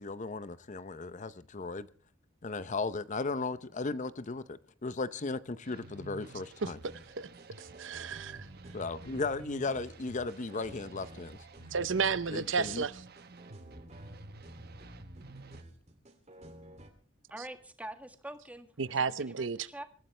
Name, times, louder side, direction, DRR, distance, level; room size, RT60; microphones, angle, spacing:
voice 1, 0.0-1.9 2.4-6.8 8.7-11.4 12.3-12.8, left 3 dB, 40° left, 0.7 m, -36 dB
sound 1, 5.7-15.6, right 2 dB, 55° right, 1.2 m, -51 dB
sound 2, 6.7-16.9, right 1 dB, 35° right, 2.7 m, -52 dB
voice 2, 7.6-8.5 11.7-13.0 18.8-19.7, right 5 dB, 75° right, 0.7 m, -32 dB
voice 3, 17.3-19.8, right 1 dB, 10° right, 1.7 m, -45 dB
26.0 x 14.5 x 3.3 m
head